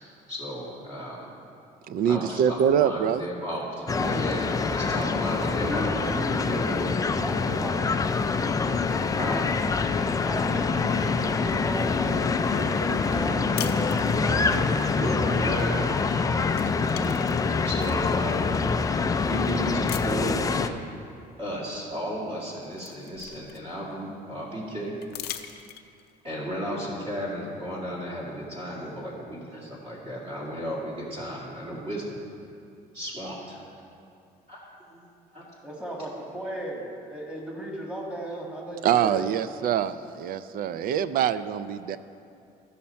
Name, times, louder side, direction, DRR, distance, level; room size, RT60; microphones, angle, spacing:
voice 1, 0.3-1.3 2.0-6.9 9.2-9.5 15.0-15.8 17.6-18.7 19.2-20.7 21.4-24.9 26.2-32.2 32.9-33.6 34.5-35.0 35.3-35.5, equal, 40° right, -5 dB, 2.2 m, -34 dB
voice 2, 1.9-3.3 38.8-42.0, right 9 dB, 60° right, 14 dB, 0.4 m, -24 dB
sound 1, 3.9-20.7, left 4 dB, 20° left, 0.4 m, -25 dB
voice 3, 5.3-8.0 10.2-15.7 35.6-39.3, right 1 dB, 5° right, -2 dB, 1.7 m, -35 dB
sound 2, 13.6-14.6 16.0-16.2 16.5-18.1 18.7-18.8 19.9-20.5 21.9-22.0 22.4-23.9 25.0-26.1, left 11 dB, 70° left, 0.6 m, -40 dB
13.5 x 5.7 x 4.2 m, 2.5 s
cardioid pair, 110°, 17 cm